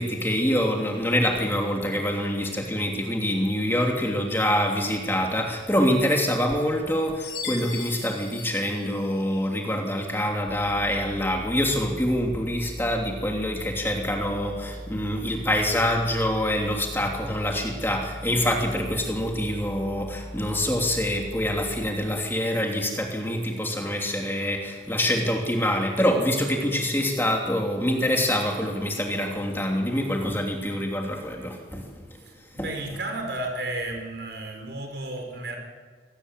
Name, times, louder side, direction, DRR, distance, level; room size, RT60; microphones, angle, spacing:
voice 1, 0.0-32.2 32.5-33.0, equal, 10° left, 1 dB, 2.9 m, -25 dB
Chime, 7.2-9.5, left 6 dB, 70° left, 8.0 m, -38 dB
sound 1, 10.5-21.9, equal, 5° right, 4.5 m, -40 dB
voice 2, 32.2-35.6, right 2 dB, 65° right, 3 dB, 5.0 m, -33 dB
26.0 x 18.5 x 8.2 m, 1.5 s
head